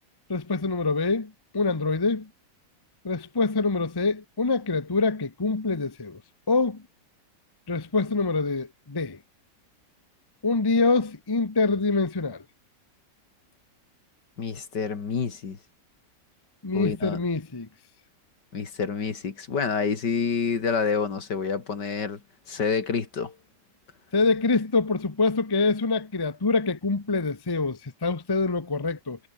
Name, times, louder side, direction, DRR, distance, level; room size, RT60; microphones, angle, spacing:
voice 1, 0.3-2.3 3.0-6.2 6.5-6.8 7.7-9.2 10.4-12.4 16.6-17.7 24.1-29.2, left 3 dB, 15° left, 0.8 m, -25 dB
voice 2, 14.4-15.6 16.7-17.2 18.5-22.2 22.5-23.4, left 5 dB, 70° left, 3.0 m, -28 dB
omnidirectional pair, 1.9 m